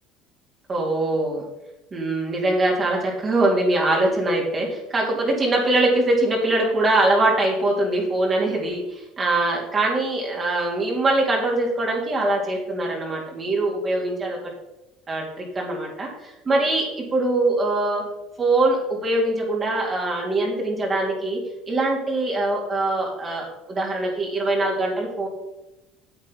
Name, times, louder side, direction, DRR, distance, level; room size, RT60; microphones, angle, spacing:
voice 1, 0.7-1.4 1.9-14.4 15.1-18.1 18.4-21.4 21.7-25.3, right 2 dB, 30° right, -2 dB, 3.7 m, -23 dB
9.1 x 7.7 x 5.9 m, 0.96 s
supercardioid pair, 85°, 0 cm